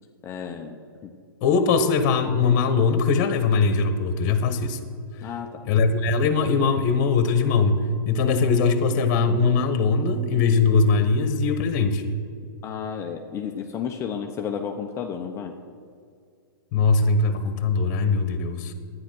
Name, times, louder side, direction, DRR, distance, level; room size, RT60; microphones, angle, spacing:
voice 1, 0.2-1.1 5.2-5.6 12.6-15.5, left 7 dB, 25° left, 3 dB, 0.8 m, -32 dB
voice 2, 1.4-4.8 5.6-12.1 16.7-18.7, left 4 dB, 40° left, 10 dB, 1.3 m, -21 dB
11.5 x 9.6 x 6.3 m, 2.2 s
hypercardioid pair, 130°, 12 cm